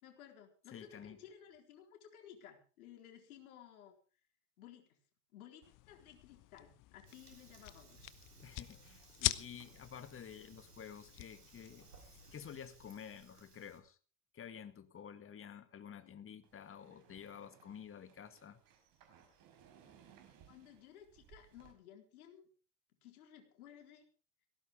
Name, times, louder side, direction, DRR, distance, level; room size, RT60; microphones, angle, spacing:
voice 1, 0.0-3.9 4.6-5.0 5.3-8.0 15.9-16.2 20.5-22.5 23.0-24.1, left 10 dB, 70° left, 4 dB, 4.2 m, -57 dB
voice 2, 0.7-1.2 8.4-14.0 14.3-18.6, left 8 dB, 30° left, 12 dB, 2.1 m, -51 dB
sound 1, 5.6-12.3, left 18 dB, 45° left, 1.1 m, -44 dB
Fire, 7.1-13.8, right 4 dB, 90° right, 3.7 m, -62 dB
sound 2, 16.4-21.7, right 8 dB, 45° right, 5.0 m, -64 dB
18.5 x 16.5 x 3.6 m, 0.37 s
figure-of-eight pair, 75°, 45 cm